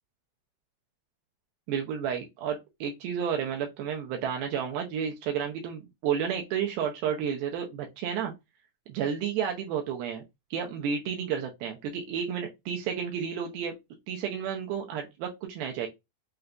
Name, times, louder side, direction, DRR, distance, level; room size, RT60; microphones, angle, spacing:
voice 1, 1.7-8.3 8.9-10.2 10.5-13.8 14.1-15.9, right 8 dB, 85° right, 2 dB, 2.4 m, -31 dB
6.5 x 2.4 x 2.2 m, 0.21 s
omnidirectional pair, 4.4 m